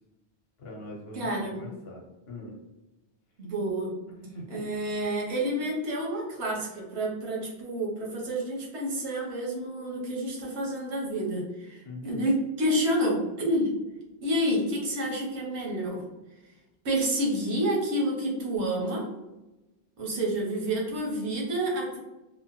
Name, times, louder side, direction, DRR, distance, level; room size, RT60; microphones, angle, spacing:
voice 1, 0.6-2.0 2.3-2.5 4.1-4.6 11.8-12.3, left 1 dB, 70° left, -2 dB, 1.0 m, -42 dB
voice 2, 1.1-1.6 3.4-3.9 4.5-13.7 14.2-16.0 16.8-19.1 20.0-22.0, right 1 dB, 90° right, -2 dB, 1.1 m, -29 dB
2.9 x 2.0 x 2.8 m, 1.0 s
omnidirectional pair, 1.1 m